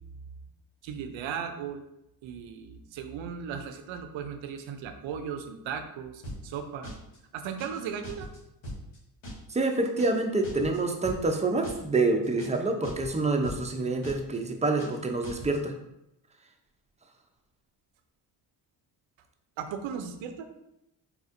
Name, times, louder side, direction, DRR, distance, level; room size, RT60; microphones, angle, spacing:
voice 1, 0.8-1.8 2.2-6.9 7.3-8.3 19.6-20.5, right 7 dB, 65° right, 7 dB, 0.6 m, -36 dB
sound 1, 6.2-6.6 6.8-7.2 7.4-7.8 8.0-8.4 8.6-9.0 9.2-9.6 9.8-10.2 10.4-10.8 11.0-11.4 11.6-12.0 12.2-12.6 12.8-13.2 13.4-13.8 14.0-14.4 14.6-15.0 15.2-15.6, equal, 70° left, 1.5 m, -41 dB
voice 2, 9.5-15.7, right 3 dB, 15° right, 3 dB, 0.5 m, -27 dB
4.2 x 2.4 x 2.5 m, 0.86 s
supercardioid pair, 65°, 49 cm